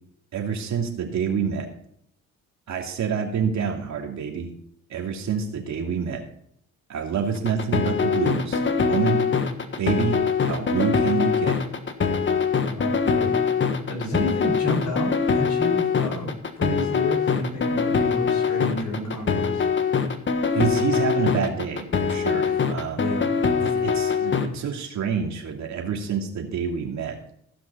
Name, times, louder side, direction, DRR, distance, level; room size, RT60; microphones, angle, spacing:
voice 1, 0.3-1.7 2.7-4.5 4.9-6.2 6.9-9.2 9.8-11.6 20.5-23.1 23.6-27.2, right 6 dB, 65° right, 2 dB, 2.7 m, -27 dB
sound 1, 7.3-24.5, left 5 dB, 40° left, 1.5 m, -23 dB
voice 2, 12.6-13.4 13.9-19.7 22.4-22.6 23.0-23.3, left 1 dB, 70° left, 0 dB, 5.2 m, -30 dB
16.0 x 6.1 x 5.6 m, 0.68 s
cardioid pair, 90°, 30 cm